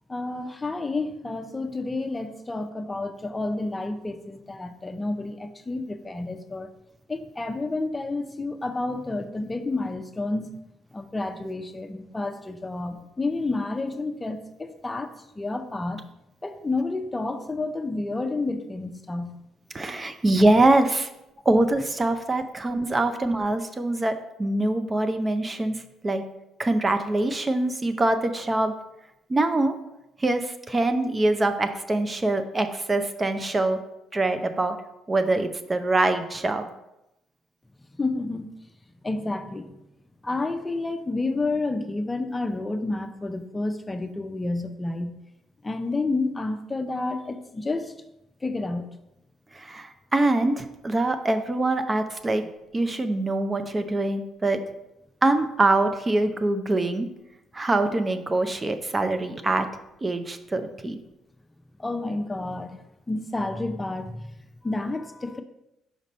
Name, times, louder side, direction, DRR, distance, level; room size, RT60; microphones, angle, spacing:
voice 1, 0.1-6.7 7.1-10.6 10.9-16.0 16.4-19.3 38.0-38.5 39.0-39.7 40.2-45.2 45.6-47.9 48.4-48.9 61.8-62.8 63.1-64.3 64.6-65.4, left 2 dB, 20° left, 8 dB, 0.6 m, -30 dB
voice 2, 19.7-21.1 21.5-25.8 26.0-26.2 26.6-28.7 29.3-29.7 30.2-33.8 34.1-34.8 35.1-36.7 49.5-52.4 52.7-54.6 55.2-57.1 57.5-59.7 60.0-61.0, right 2 dB, 25° right, 8 dB, 0.6 m, -24 dB
5.2 x 5.1 x 4.2 m, 0.89 s
hypercardioid pair, 60°, 0 cm